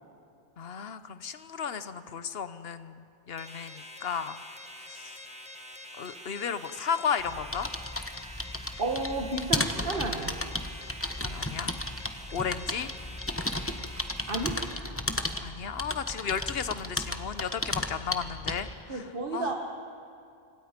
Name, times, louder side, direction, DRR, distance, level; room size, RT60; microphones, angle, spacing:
voice 1, 0.6-4.4 4.9-5.2 6.0-7.7 11.2-11.7 12.3-12.9 15.4-19.0 19.3-19.5, left 7 dB, 65° left, 12 dB, 1.1 m, -34 dB
sound 1, 3.4-14.8, left 1 dB, 5° right, 1.7 m, -46 dB
sound 2, 7.2-18.8, left 1 dB, 15° left, 1.0 m, -34 dB
voice 2, 8.8-10.4 14.3-14.6 18.9-19.5, right 2 dB, 55° right, 1 dB, 1.8 m, -31 dB
26.0 x 25.5 x 5.2 m, 2.5 s
omnidirectional pair, 1.1 m